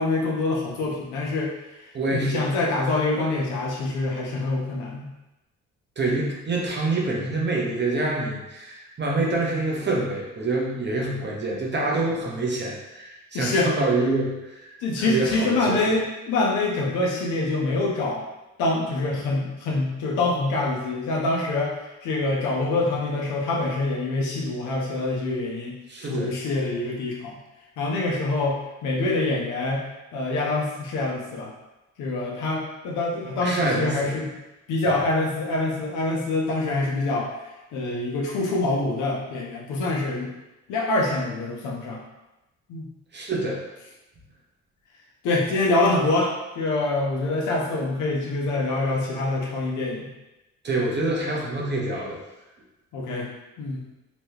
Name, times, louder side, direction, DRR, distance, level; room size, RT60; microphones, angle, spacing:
voice 1, 0.0-1.5 2.1-5.1 13.3-13.7 14.8-18.2 18.6-21.8 22.0-25.8 26.1-27.4 27.8-29.8 30.1-31.5 32.0-34.3 34.7-37.3 37.7-40.3 40.7-42.0 42.7-42.9 45.2-50.1 52.9-53.3 53.6-53.8, left 2 dB, 85° left, -2 dB, 0.7 m, -25 dB
voice 2, 1.9-2.4 6.0-15.8 25.9-26.3 33.4-34.1 43.1-43.6 50.6-52.2, right 2 dB, 35° right, -2 dB, 0.8 m, -26 dB
2.9 x 2.3 x 3.2 m, 1.0 s
cardioid pair, 90°, 30 cm